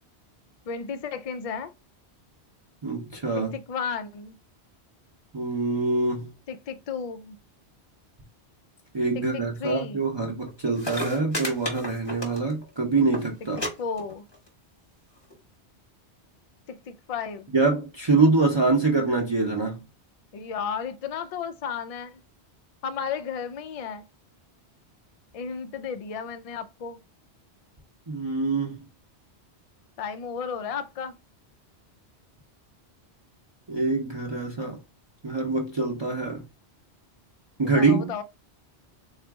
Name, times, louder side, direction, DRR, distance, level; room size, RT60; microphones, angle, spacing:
voice 1, 0.7-1.7 3.5-4.4 6.5-7.4 9.1-10.0 13.8-14.2 16.7-17.5 20.3-22.2 22.8-24.0 25.3-27.0 30.0-31.1 37.7-38.2, left 6 dB, 60° left, 0.3 m, -33 dB
voice 2, 2.8-3.6 5.3-6.3 8.9-13.6 17.5-19.8 28.1-28.8 33.7-34.8 35.2-36.4 37.6-38.1, right 3 dB, 30° right, 0.6 m, -25 dB
sound 1, 10.5-10.6 10.8-12.7 13.0-13.2 13.6-13.7 14.0-14.5 15.3-15.4, left 1 dB, 25° left, 1.0 m, -32 dB
3.8 x 2.4 x 3.5 m
omnidirectional pair, 1.1 m